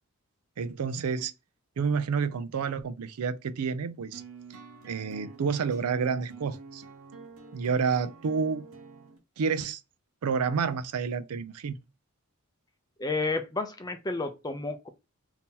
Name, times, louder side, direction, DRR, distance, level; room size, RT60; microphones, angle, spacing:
voice 1, 0.6-1.3 1.8-4.2 4.9-6.8 7.5-8.7 9.4-9.8 10.2-11.8, right 5 dB, 85° right, 0.4 m, -29 dB
sound 1, 4.1-9.2, right 4 dB, 65° right, 0.9 m, -47 dB
voice 2, 13.0-14.9, left 3 dB, 15° left, 0.5 m, -31 dB
2.8 x 2.7 x 3.6 m
head